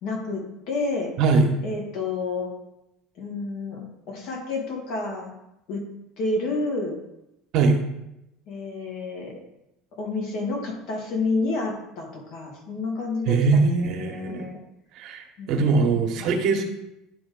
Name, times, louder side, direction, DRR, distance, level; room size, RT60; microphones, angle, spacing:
voice 1, 0.0-1.1 1.6-2.5 3.2-5.3 5.7-5.8 6.2-7.0 8.5-9.3 10.0-14.6 15.4-16.5, left 3 dB, 65° left, -1 dB, 2.4 m, -30 dB
voice 2, 13.3-14.5 15.0-16.6, right 4 dB, 60° right, 4 dB, 1.3 m, -21 dB
10.5 x 3.5 x 3.8 m, 0.87 s
supercardioid pair, 95°, 0 cm